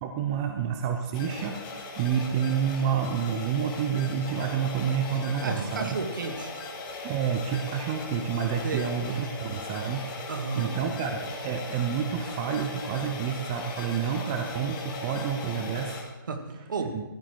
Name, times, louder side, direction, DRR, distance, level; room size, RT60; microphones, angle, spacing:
voice 1, 0.0-6.0 7.0-10.0 10.5-16.0 16.8-17.0, right 7 dB, 15° right, 5 dB, 0.4 m, -29 dB
sound 1, 1.1-16.0, left 3 dB, 20° left, 2.0 m, -39 dB
voice 2, 5.4-6.5 8.6-8.9 10.3-10.8 16.3-17.0, right 4 dB, 60° right, 5 dB, 1.9 m, -32 dB
14.0 x 9.4 x 4.5 m, 1.1 s
hypercardioid pair, 165°, 12 cm